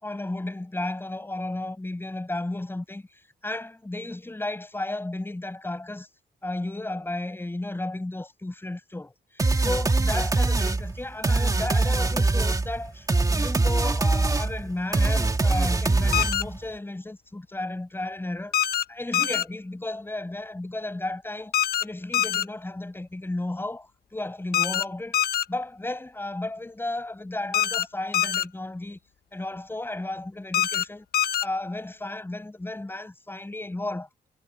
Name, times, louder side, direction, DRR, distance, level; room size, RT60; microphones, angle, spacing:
voice 1, 0.0-3.0 3.4-6.1 6.4-9.1 9.6-18.5 18.9-21.5 21.8-23.9 24.1-25.2 25.5-29.0 29.3-31.0 31.4-34.1, left 2 dB, 15° left, 6.3 m, -33 dB
sound 1, 9.4-16.6, right 3 dB, 20° right, 2.5 m, -23 dB
sound 2, 16.1-16.4 18.5-18.8 19.1-19.4 21.5-21.8 22.1-22.4 24.5-24.8 25.1-25.4 27.5-27.8 28.1-28.4 30.5-30.8 31.1-31.4, left 10 dB, 70° left, 1.2 m, -24 dB
cardioid pair, 115°, 16 cm